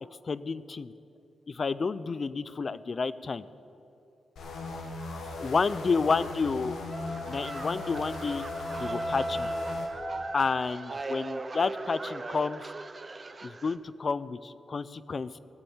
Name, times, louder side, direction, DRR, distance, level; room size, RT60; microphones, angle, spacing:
voice 1, 0.3-0.9 1.5-3.4 5.4-6.8 7.3-8.5 8.8-9.5 10.3-12.6 13.4-15.4, left 4 dB, 45° left, 16 dB, 0.4 m, -30 dB
sound 1, 4.4-9.9, left 2 dB, 85° left, 1.7 m, -39 dB
Wind instrument woodwind instrument, 6.9-10.9, equal, ahead, 1.5 m, -37 dB
sound 2, 7.0-13.8, right 3 dB, 30° right, 0.6 m, -40 dB
18.5 x 7.1 x 7.2 m, 2.7 s
cardioid pair, 95°, 0 cm